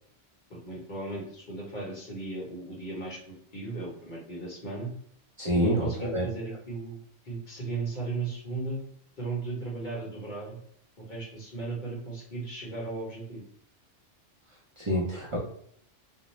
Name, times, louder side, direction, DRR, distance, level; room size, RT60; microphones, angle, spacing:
voice 1, 0.5-4.9 5.5-7.0 7.2-8.8 9.2-10.6 11.0-13.4, right 3 dB, 45° left, -4 dB, 1.0 m, -36 dB
voice 2, 5.4-6.3 14.8-15.4, equal, 40° right, -4 dB, 0.4 m, -27 dB
2.6 x 2.0 x 3.0 m, 0.69 s
omnidirectional pair, 1.2 m